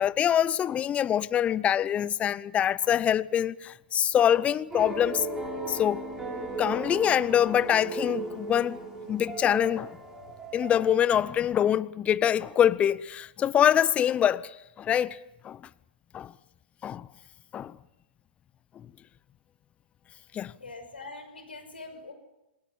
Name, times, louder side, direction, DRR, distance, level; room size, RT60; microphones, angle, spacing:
voice 1, 0.0-5.3 5.7-6.0 6.6-8.8 9.1-10.0 10.5-15.2 15.4-15.6 16.1-16.3 16.8-17.1 17.5-17.8 18.8-18.9 20.3-20.5, left 10 dB, 25° left, 0.8 m, -25 dB
sound 1, 4.7-11.3, right 3 dB, 10° right, 5.9 m, -36 dB
voice 2, 20.6-22.1, left 3 dB, 85° left, 6.2 m, -43 dB
27.5 x 20.5 x 7.3 m
figure-of-eight pair, 110°, 5 cm